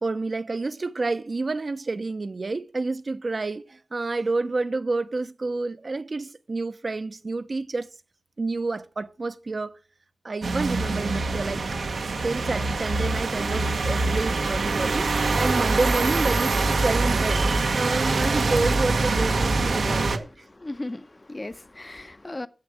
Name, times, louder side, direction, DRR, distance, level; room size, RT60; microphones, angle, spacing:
voice 1, 0.0-7.9 8.4-9.8 10.2-11.6 12.2-15.1 15.3-20.4, right 3 dB, 60° right, 0.8 m, -29 dB
sound 1, 10.4-20.2, right 3 dB, 90° right, 1.3 m, -24 dB
voice 2, 20.4-22.5, left 2 dB, 35° left, 0.9 m, -36 dB
9.8 x 7.6 x 6.2 m
cardioid pair, 45°, 0 cm